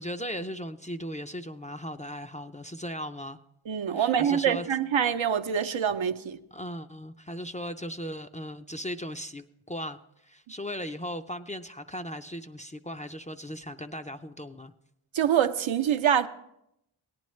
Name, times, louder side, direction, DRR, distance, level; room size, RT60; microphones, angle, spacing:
voice 1, 0.0-3.4 3.9-4.7 6.5-14.7, equal, 15° left, 0.4 m, -37 dB
voice 2, 3.7-6.4 15.1-16.3, right 8 dB, 70° right, 0.7 m, -25 dB
17.5 x 10.5 x 3.2 m
cardioid pair, 45°, 49 cm